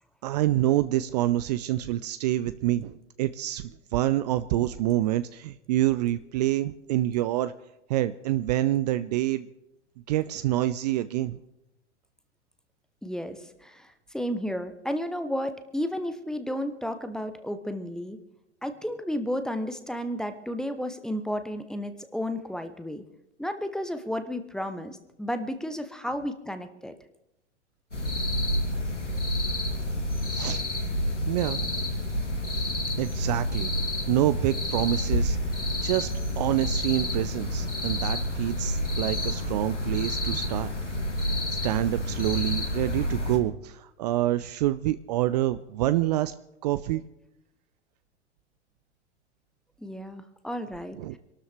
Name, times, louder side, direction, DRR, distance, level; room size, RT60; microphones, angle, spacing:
voice 1, 0.2-7.5 7.9-9.5 10.1-11.4 30.3-30.6 31.3-31.7 32.5-32.7 33.0-35.4 35.8-36.1 36.4-40.7 41.6-46.3 46.6-47.0 51.0-51.2, right 14 dB, 35° right, 13 dB, 0.5 m, -27 dB
voice 2, 13.0-18.2 18.6-23.0 23.4-26.9 49.8-51.2, equal, ahead, 9 dB, 0.8 m, -32 dB
sound 1, 27.9-43.4, left 1 dB, 90° left, 2.9 m, -29 dB
25.5 x 12.5 x 3.4 m, 0.87 s
figure-of-eight pair, 100°, 35 cm